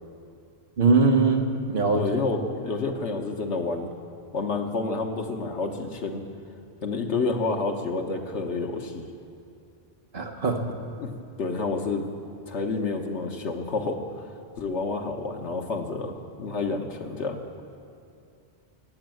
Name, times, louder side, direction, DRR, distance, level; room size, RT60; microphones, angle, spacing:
voice 1, 0.8-2.2 10.1-10.6, right 3 dB, 50° right, 3 dB, 1.3 m, -22 dB
voice 2, 1.8-3.9 4.3-6.2 6.8-9.1 11.0-11.1 11.4-12.1 12.5-14.0 14.6-17.4, left 3 dB, 80° left, 3 dB, 1.5 m, -29 dB
18.5 x 8.2 x 7.8 m, 2.5 s
omnidirectional pair, 1.2 m